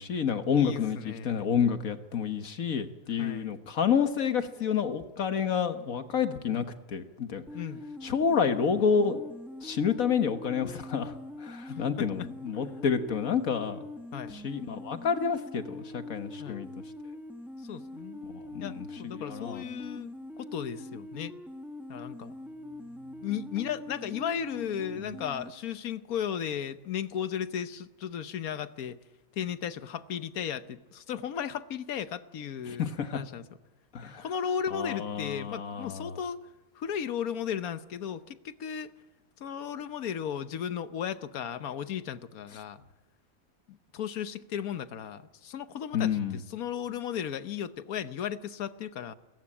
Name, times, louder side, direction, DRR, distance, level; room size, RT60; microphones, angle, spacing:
voice 1, 0.0-7.4 8.0-9.2 9.6-11.1 11.4-13.8 14.4-16.7 18.3-19.6 32.7-33.2 33.9-34.2 34.7-36.1 45.9-46.4, left 7 dB, 75° left, 8 dB, 1.8 m, -29 dB
voice 2, 0.5-1.5 3.2-3.5 6.5-6.6 7.5-7.8 11.7-12.3 12.6-12.7 14.1-14.3 16.4-16.6 17.6-18.2 18.6-21.3 21.9-22.3 23.2-29.0 29.3-32.9 33.1-33.5 34.0-36.5 36.7-38.9 39.4-42.8 43.7-49.1, left 8 dB, 90° left, 12 dB, 1.4 m, -35 dB
sound 1, 7.5-25.5, left 2 dB, ahead, 1.4 m, -43 dB
29.0 x 14.0 x 8.8 m, 1.2 s
omnidirectional pair, 1.5 m